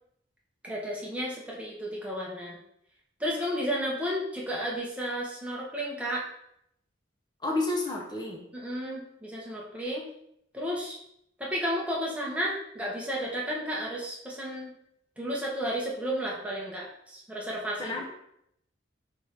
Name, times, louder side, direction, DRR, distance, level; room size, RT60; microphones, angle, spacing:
voice 1, 0.6-2.6 3.2-6.3 8.5-10.1 10.5-11.0 11.4-14.7 15.2-18.0, equal, 5° right, -4 dB, 0.9 m, -32 dB
voice 2, 7.4-8.5 17.8-18.0, left 2 dB, 20° left, -1 dB, 0.8 m, -30 dB
3.5 x 3.2 x 4.4 m, 0.74 s
head